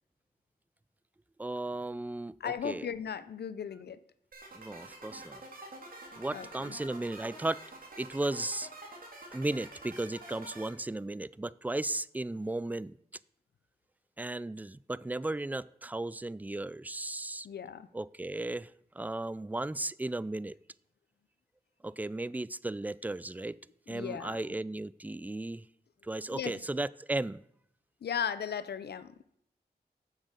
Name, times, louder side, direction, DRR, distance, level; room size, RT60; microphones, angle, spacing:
voice 1, 1.4-2.9 4.5-5.4 6.2-7.6 8.0-8.7 9.3-13.0 14.2-17.5 17.9-20.6 21.8-23.6 23.9-25.7 26.0-27.4, right 2 dB, 10° right, 20 dB, 0.3 m, -35 dB
voice 2, 2.4-4.0 6.3-6.7 17.4-17.9 23.9-24.4 26.3-26.5 28.0-29.1, left 7 dB, 85° left, 15 dB, 0.5 m, -36 dB
sound 1, 4.3-10.7, right 2 dB, 60° right, 2.7 m, -48 dB
7.5 x 7.3 x 6.4 m, 0.72 s
cardioid pair, 50°, 16 cm